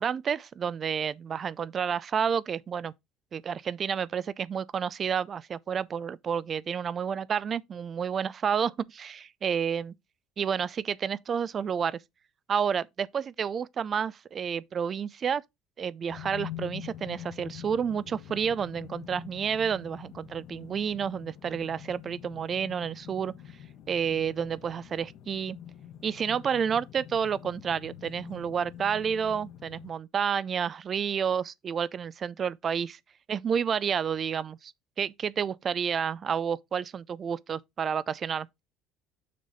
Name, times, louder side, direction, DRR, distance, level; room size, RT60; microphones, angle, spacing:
voice 1, 0.0-2.9 3.3-9.9 10.4-12.0 12.5-15.4 15.8-23.3 23.9-25.6 26.0-33.0 33.3-34.7 35.0-38.5, right 7 dB, 30° right, 0.4 m, -30 dB
sound 1, 16.1-29.9, left 11 dB, 55° left, 1.0 m, -45 dB
6.5 x 4.0 x 4.9 m
cardioid pair, 150°, 0 cm